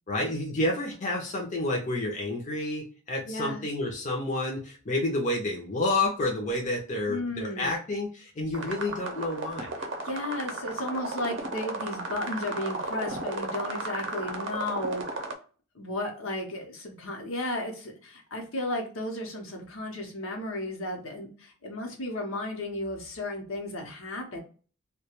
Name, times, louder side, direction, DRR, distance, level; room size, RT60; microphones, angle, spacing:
voice 1, 0.1-9.7, left 2 dB, 35° left, -1 dB, 0.6 m, -29 dB
voice 2, 3.2-3.7 7.1-7.7 9.8-15.0 15.7-24.4, left 1 dB, 75° left, 1 dB, 0.8 m, -34 dB
sound 1, 8.5-15.3, right 2 dB, 60° right, 0.6 m, -35 dB
2.3 x 2.2 x 2.8 m, 0.39 s
head